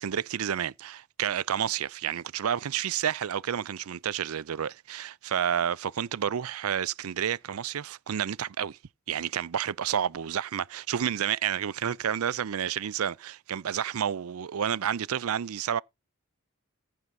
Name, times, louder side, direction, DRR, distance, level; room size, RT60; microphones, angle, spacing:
voice 1, 0.0-8.8 9.1-15.8, right 9 dB, 80° right, 0.5 m, -30 dB
15.0 x 6.0 x 4.2 m
head